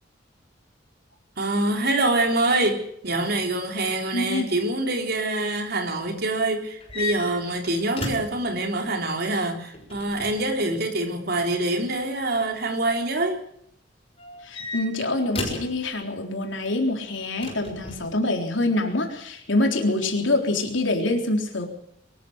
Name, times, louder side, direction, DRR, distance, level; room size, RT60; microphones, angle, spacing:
voice 1, 1.4-13.4, right 2 dB, 55° right, 3.8 m, -25 dB
voice 2, 4.1-4.5 14.4-21.7, left 2 dB, 85° left, 3.8 m, -25 dB
sound 1, 6.8-8.5 9.7-10.5 12.0-12.4 14.2-15.8 17.4-18.1, left 3 dB, 30° left, 6.7 m, -34 dB
23.0 x 14.0 x 8.1 m
head